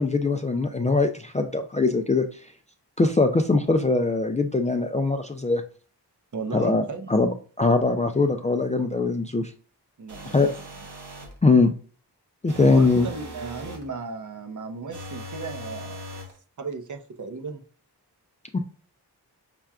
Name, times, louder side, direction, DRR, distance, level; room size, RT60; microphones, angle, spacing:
voice 1, 0.0-2.2 3.0-5.6 6.5-6.8 7.1-9.5 10.3-10.5 11.4-11.7 12.4-13.1 18.5-18.6, left 3 dB, 20° left, 6 dB, 0.3 m, -21 dB
voice 2, 6.3-7.1 10.0-10.5 12.6-16.0 16.6-17.6, right 4 dB, 50° right, 5 dB, 0.7 m, -35 dB
sound 1, 10.1-11.4 12.5-13.9 14.9-16.4, equal, 80° right, 1.2 m, -40 dB
5.7 x 2.2 x 2.4 m, 0.41 s
cardioid pair, 55°, 40 cm